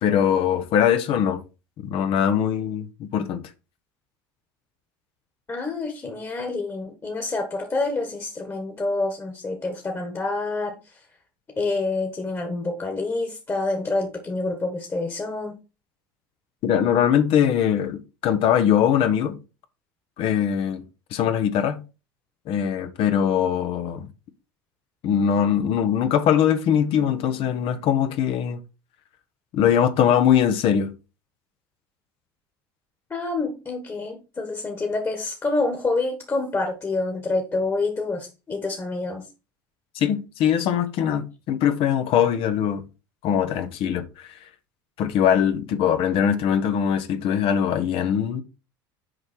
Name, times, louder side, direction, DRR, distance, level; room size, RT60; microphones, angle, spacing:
voice 1, 0.0-1.4 1.8-3.4 16.6-19.4 20.2-20.8 21.1-21.8 22.5-24.1 25.0-28.6 29.5-30.9 39.9-42.8 43.2-44.3 45.0-48.4, left 9 dB, 55° left, 1.0 m, -21 dB
voice 2, 5.5-10.8 11.6-15.6 33.1-39.2, left 3 dB, 25° left, 1.6 m, -27 dB
6.4 x 4.7 x 4.4 m
hypercardioid pair, 90°, 11 cm